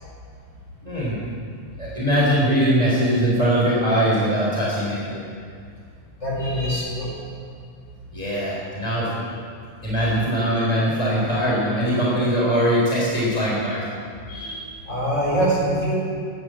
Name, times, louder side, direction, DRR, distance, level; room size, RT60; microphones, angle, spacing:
voice 1, 0.8-1.2 1.8-5.2 8.1-9.3 9.8-13.8, equal, 10° right, -7 dB, 3.2 m, -21 dB
voice 2, 6.2-7.1 14.3-15.9, right 1 dB, 20° left, -6 dB, 4.5 m, -24 dB
11.0 x 10.0 x 7.5 m, 2.2 s
omnidirectional pair, 4.2 m